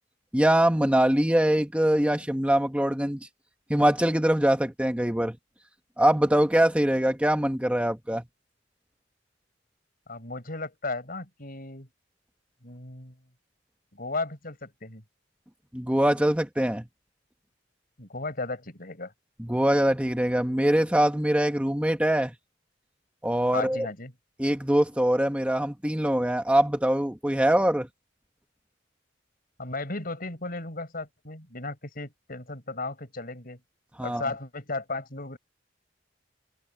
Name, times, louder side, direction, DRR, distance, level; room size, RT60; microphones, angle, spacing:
voice 1, 0.3-3.2 3.7-5.4 6.0-8.2 15.7-16.8 19.4-22.3 23.2-23.9 24.4-27.9 34.0-34.3, right 1 dB, 5° right, 1.2 m, -23 dB
voice 2, 10.1-11.9 12.6-13.1 13.9-15.0 18.0-19.1 23.5-24.1 29.6-33.6 34.0-35.4, left 3 dB, 50° left, 6.2 m, -35 dB
head